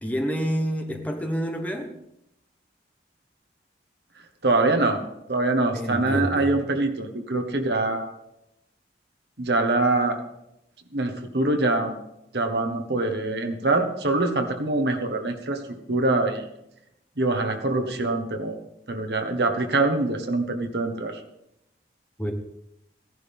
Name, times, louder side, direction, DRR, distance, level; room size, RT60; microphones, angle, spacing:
voice 1, 0.0-1.9 5.7-6.5 22.2-22.3, equal, 10° left, 3 dB, 1.1 m, -28 dB
voice 2, 4.4-5.0 5.3-8.1 9.4-10.2 10.9-11.9 12.3-15.6 15.9-16.5 17.2-18.6 18.9-21.2, right 2 dB, 70° right, 4 dB, 1.4 m, -24 dB
15.5 x 11.0 x 3.6 m, 0.83 s
head